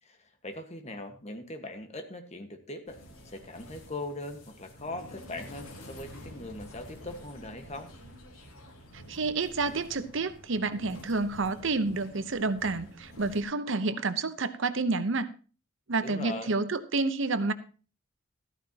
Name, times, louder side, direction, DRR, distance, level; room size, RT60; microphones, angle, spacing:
voice 1, 0.0-7.9 16.0-16.5, left 2 dB, 30° left, 7 dB, 1.4 m, -40 dB
sound 1, 2.9-13.4, equal, 80° left, 3.1 m, -49 dB
voice 2, 8.9-15.3 15.9-17.5, right 3 dB, 60° right, 12 dB, 0.8 m, -29 dB
14.0 x 13.5 x 2.9 m, 0.36 s
head